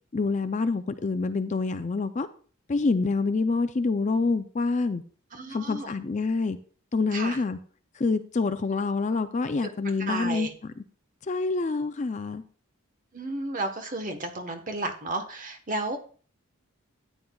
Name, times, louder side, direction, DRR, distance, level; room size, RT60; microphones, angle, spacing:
voice 1, 0.1-2.3 2.7-5.0 5.5-6.6 6.9-7.6 8.0-10.7 11.3-12.4, left 3 dB, 35° left, 11 dB, 0.4 m, -27 dB
voice 2, 5.3-5.9 7.1-7.4 9.6-9.7 10.0-10.5 13.1-16.0, right 2 dB, 35° right, 7 dB, 1.1 m, -32 dB
13.0 x 9.3 x 2.3 m, 0.42 s
head